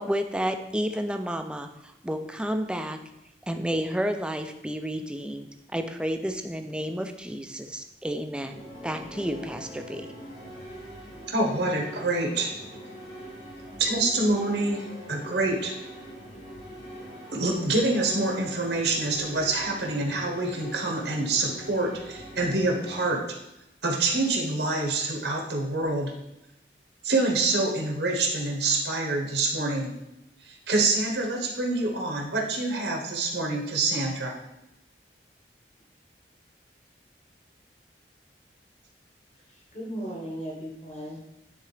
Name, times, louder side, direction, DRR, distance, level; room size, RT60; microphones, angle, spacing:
voice 1, 0.0-3.0 3.4-10.1, equal, 5° right, 6 dB, 0.4 m, -31 dB
sound 1, 8.4-23.1, equal, 85° left, 2.2 m, -43 dB
voice 2, 11.3-12.5 13.8-15.7 17.3-23.2 23.8-26.1 27.0-29.9 30.4-34.4, right 2 dB, 80° right, 0 dB, 1.1 m, -26 dB
voice 3, 39.5-41.3, equal, 40° left, -3 dB, 1.4 m, -37 dB
9.8 x 3.7 x 3.3 m, 0.89 s
head